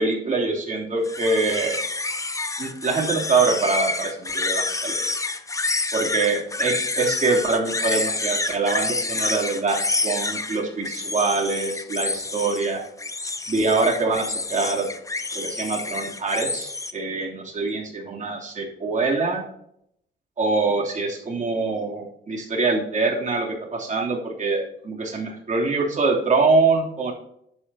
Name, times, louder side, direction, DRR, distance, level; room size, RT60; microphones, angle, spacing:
voice 1, 0.0-1.8 2.6-5.0 5.9-12.8 13.5-14.9 15.3-19.4 20.4-27.1, right 3 dB, 40° right, -2 dB, 3.1 m, -24 dB
sound 1, 1.0-16.9, left 3 dB, 15° left, 0.7 m, -28 dB
11.0 x 8.6 x 2.9 m, 0.73 s
cardioid pair, 90°, 20 cm